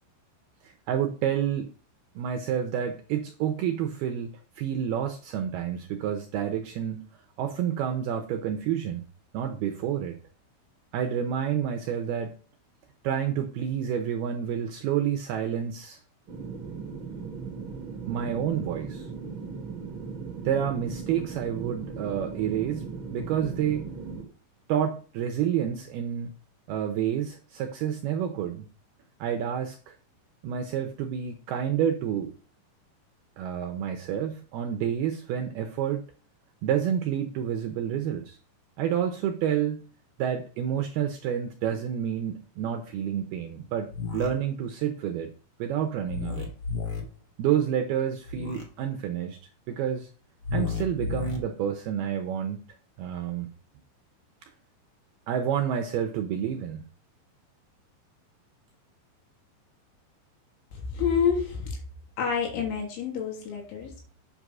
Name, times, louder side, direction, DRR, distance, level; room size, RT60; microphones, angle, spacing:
voice 1, 0.6-1.7 2.2-4.3 4.6-7.0 7.4-9.0 9.3-10.2 10.9-12.4 13.0-16.0 18.1-19.1 20.4-23.9 24.7-26.3 26.7-28.7 29.2-29.9 30.4-32.3 33.4-36.0 36.6-38.4 38.8-39.8 40.2-45.3 45.6-46.5 47.4-49.4 49.7-50.1 50.5-52.6 53.0-53.5 55.3-56.8, right 9 dB, 80° right, 5 dB, 2.3 m, -29 dB
sound 1, 16.3-24.2, right 5 dB, 45° right, 1.6 m, -38 dB
sound 2, 43.9-44.3 46.1-47.0 48.3-48.6 50.4-51.4, left 5 dB, 40° left, 1.4 m, -32 dB
voice 2, 60.7-61.8 62.2-64.1, left 6 dB, 75° left, 1 dB, 5.3 m, -28 dB
8.5 x 6.8 x 6.1 m, 0.40 s
omnidirectional pair, 5.5 m